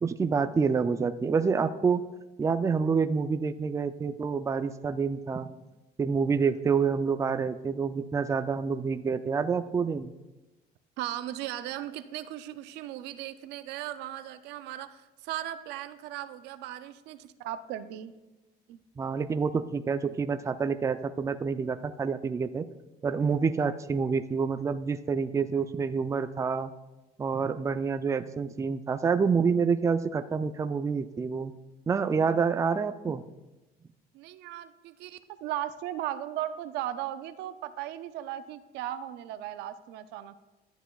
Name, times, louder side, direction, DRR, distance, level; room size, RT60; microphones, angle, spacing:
voice 1, 0.0-2.1 2.4-5.5 6.0-10.1 19.0-22.6 23.0-26.7 27.2-31.5 31.9-33.2, right 5 dB, 20° right, 10 dB, 0.4 m, -27 dB
voice 2, 11.0-18.1 18.7-18.8 34.1-40.4, right 12 dB, 90° right, 13 dB, 0.5 m, -37 dB
12.0 x 8.0 x 2.3 m, 1.1 s
cardioid pair, 110°, 17 cm